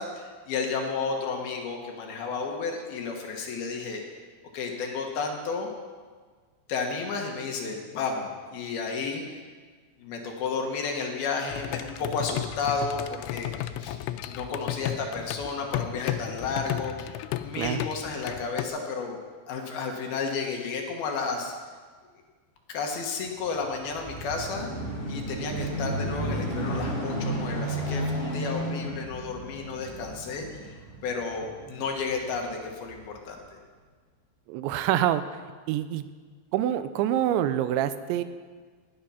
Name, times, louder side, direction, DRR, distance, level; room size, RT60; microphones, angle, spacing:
voice 1, 0.0-4.0 4.5-5.7 6.7-9.4 10.0-14.0 14.2-19.2 19.5-21.5 22.7-24.7 25.1-30.8 31.0-33.4, left 4 dB, 65° left, 2 dB, 3.0 m, -32 dB
sound 1, 11.5-18.7, left 12 dB, 90° left, 3.0 m, -34 dB
sound 2, 23.5-32.3 32.9-33.0, right 1 dB, 15° left, 5.4 m, -33 dB
voice 2, 34.5-35.2 35.7-36.1 36.5-38.2, right 12 dB, 90° right, 12 dB, 3.0 m, -26 dB
18.0 x 10.5 x 5.7 m, 1.5 s
omnidirectional pair, 5.3 m